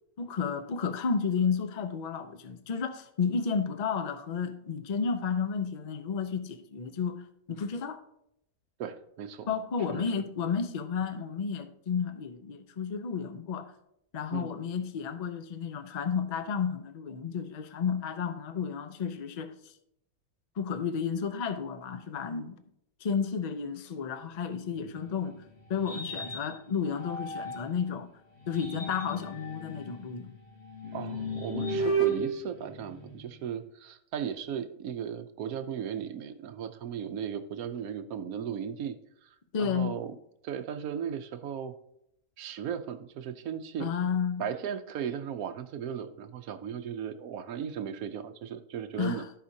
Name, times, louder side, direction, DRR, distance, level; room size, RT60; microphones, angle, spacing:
voice 1, 0.2-7.2 7.5-8.0 9.5-13.7 14.1-19.5 20.6-22.6 23.0-25.4 25.7-28.1 28.5-30.3 39.5-39.9 43.8-44.4 49.0-49.3, left 6 dB, 50° left, 0.5 m, -32 dB
voice 2, 8.8-9.5 9.9-10.1 14.3-14.5 30.9-39.0 39.2-39.3 39.6-40.2 40.4-41.8 42.4-43.9 44.4-49.2, right 8 dB, 75° right, 1.1 m, -36 dB
sound 1, 24.6-27.8 28.3-33.5, right 3 dB, 75° left, 2.8 m, -35 dB
14.5 x 5.0 x 2.7 m
omnidirectional pair, 1.6 m